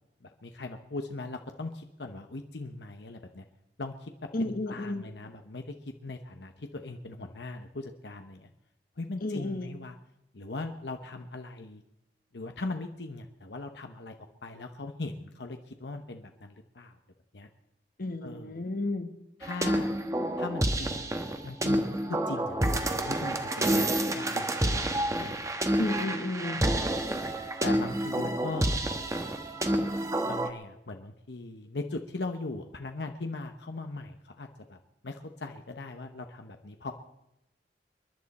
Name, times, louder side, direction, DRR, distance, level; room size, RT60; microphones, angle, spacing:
voice 1, 0.2-3.4 3.8-4.1 4.4-8.5 9.0-10.0 10.3-11.8 12.3-14.2 14.4-17.0 17.3-17.5 18.2-18.6 19.4-20.0 20.4-25.4 27.6-28.9 30.2-36.9, left 2 dB, 75° left, 5 dB, 1.0 m, -39 dB
voice 2, 4.3-5.1 9.2-9.7 18.0-19.1 25.8-26.6, left 2 dB, 55° left, 8 dB, 1.3 m, -32 dB
sound 1, 19.4-30.5, right 1 dB, 20° right, 1.1 m, -29 dB
27.5 x 11.0 x 4.2 m, 0.87 s
head